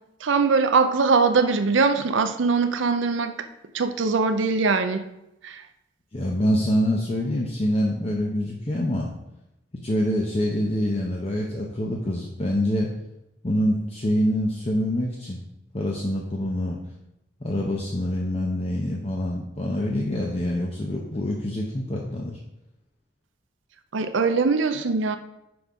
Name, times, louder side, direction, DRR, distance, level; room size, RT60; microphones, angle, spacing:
voice 1, 0.2-3.3 3.7-5.0 5.4-5.6 23.9-25.2, right 4 dB, 80° right, 9 dB, 0.6 m, -21 dB
voice 2, 6.1-9.1 9.8-12.9 13.4-15.4 15.7-16.8 17.4-22.4, equal, 30° left, -2 dB, 0.7 m, -25 dB
6.2 x 5.3 x 4.7 m, 0.87 s
head